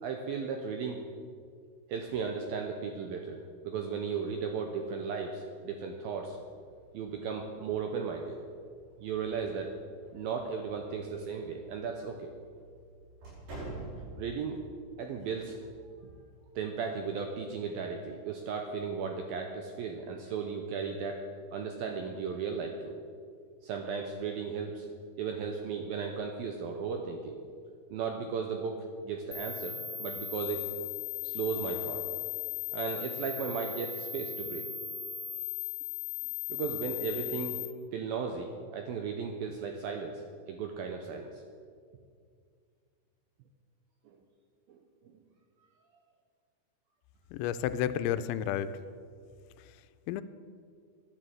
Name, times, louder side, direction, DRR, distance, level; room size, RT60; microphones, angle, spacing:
voice 1, 0.0-1.0 1.9-6.4 6.9-8.4 9.0-9.7 10.1-12.3 14.2-14.6 15.0-15.6 15.8-16.1 16.6-21.2 21.5-23.0 23.6-24.9 25.2-27.4 27.9-30.7 31.2-32.0 32.7-34.7 36.5-37.6 37.9-41.4 44.1-44.2 44.7-45.1, right 5 dB, 80° right, 4 dB, 2.2 m, -36 dB
sound 1, 6.2-17.1, right 2 dB, 60° right, 7.0 m, -50 dB
sound 2, 29.3-37.7, left 10 dB, 65° left, 2.7 m, -37 dB
voice 2, 47.3-48.7 50.1-50.2, left 10 dB, 85° left, 12 dB, 2.9 m, -31 dB
12.5 x 9.9 x 7.7 m, 2.1 s
omnidirectional pair, 5.2 m